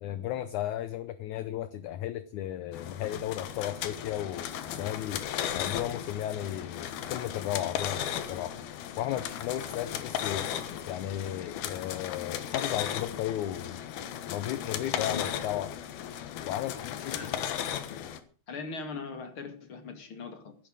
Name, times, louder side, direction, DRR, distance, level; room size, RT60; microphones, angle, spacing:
voice 1, 0.0-5.2 5.5-8.5 9.0-10.5 10.9-13.8 14.3-15.7 16.4-17.4, left 12 dB, 75° left, 14 dB, 1.9 m, -35 dB
sound 1, 2.7-18.2, left 10 dB, 90° left, 3.2 m, -36 dB
voice 2, 14.9-15.5 17.1-17.4 18.5-20.6, left 4 dB, 40° left, 8 dB, 2.5 m, -40 dB
15.0 x 11.0 x 6.4 m, 0.40 s
omnidirectional pair, 4.2 m